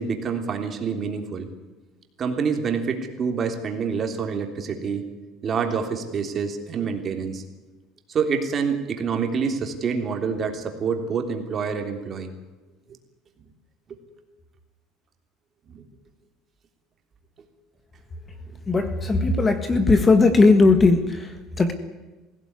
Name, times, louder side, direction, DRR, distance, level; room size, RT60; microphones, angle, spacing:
voice 1, 0.0-1.5 2.2-5.1 5.4-7.4 8.1-12.3 13.9-14.0 15.7-15.8, right 5 dB, 30° right, 4 dB, 3.4 m, -27 dB
voice 2, 18.7-21.7, left 3 dB, 20° left, 9 dB, 1.6 m, -18 dB
21.5 x 16.5 x 9.8 m, 1.2 s
cardioid pair, 145°, 0 cm